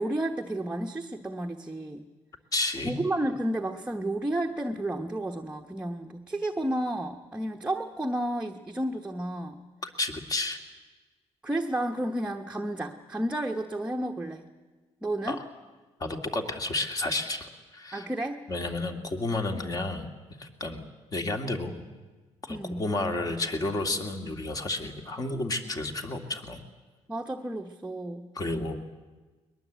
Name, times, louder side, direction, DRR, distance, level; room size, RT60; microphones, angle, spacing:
voice 1, 0.0-2.0 2.8-9.6 11.4-14.4 15.0-15.4 17.9-18.4 22.5-22.8 27.1-28.3, right 1 dB, 10° right, 2 dB, 1.0 m, -31 dB
voice 2, 2.5-3.0 9.8-10.6 15.3-15.4 16.0-18.1 18.5-20.1 20.4-20.9 21.1-21.8 22.4-26.6 28.3-29.0, left 2 dB, 35° left, 5 dB, 2.4 m, -31 dB
21.5 x 21.0 x 8.2 m, 1.3 s
cardioid pair, 120°, 11 cm